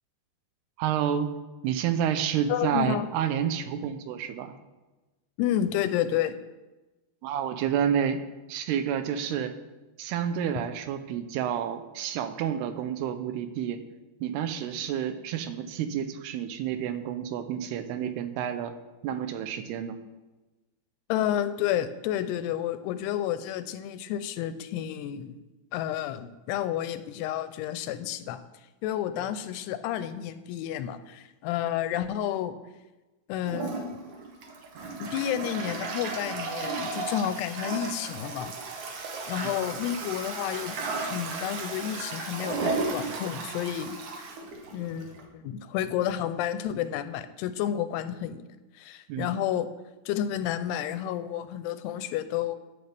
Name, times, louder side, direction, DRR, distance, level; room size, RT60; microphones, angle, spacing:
voice 1, 0.8-1.3 1.6-4.5 7.2-8.2 8.5-9.5 10.0-13.8 14.2-18.7 19.0-20.0 39.4-39.6 49.1-49.3, right 9 dB, 85° right, 9 dB, 2.7 m, -29 dB
voice 2, 2.5-3.1 5.4-6.4 21.1-25.4 25.7-28.4 28.8-32.6 33.3-33.9 35.0-38.5 39.3-40.8 41.1-44.0 44.7-48.4 48.8-49.7 50.1-52.6, left 11 dB, 85° left, 12 dB, 2.6 m, -30 dB
Toilet flush, 33.4-45.2, right 3 dB, 60° right, 2.2 m, -34 dB
13.5 x 8.8 x 3.4 m, 1.1 s
omnidirectional pair, 4.7 m